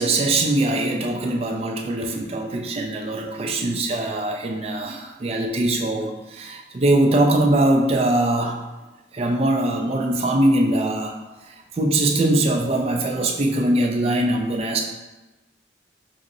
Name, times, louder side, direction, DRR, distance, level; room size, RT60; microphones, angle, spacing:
voice 1, 0.0-8.6 9.1-11.2 11.7-14.8, right 1 dB, 30° right, 3 dB, 0.3 m, -22 dB
5.0 x 2.6 x 2.6 m, 1.1 s
head